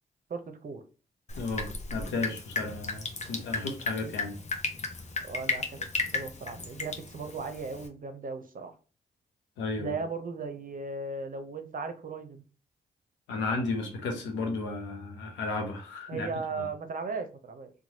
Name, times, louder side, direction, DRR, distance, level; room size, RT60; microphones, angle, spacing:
voice 1, 0.3-0.8 5.2-5.9 6.1-8.7 9.8-12.4 16.1-17.7, right 4 dB, 50° right, 7 dB, 0.6 m, -37 dB
Drip, 1.3-7.9, left 3 dB, 40° left, 0.7 m, -35 dB
voice 2, 1.4-4.4 9.6-10.0 13.3-16.3 16.5-16.7, left 3 dB, 85° left, 3 dB, 0.7 m, -33 dB
3.0 x 2.2 x 2.7 m, 0.36 s
supercardioid pair, 40°, 19 cm